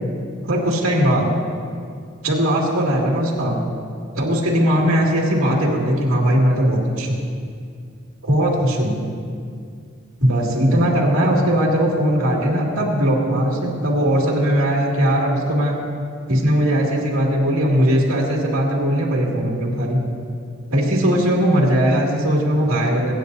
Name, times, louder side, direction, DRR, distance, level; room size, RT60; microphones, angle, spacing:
voice 1, 0.4-1.3 2.2-3.6 4.1-7.2 8.2-9.1 10.2-15.8 16.3-20.0 20.7-23.1, equal, 85° right, -3 dB, 2.4 m, -19 dB
24.0 x 9.4 x 2.7 m, 2.2 s
head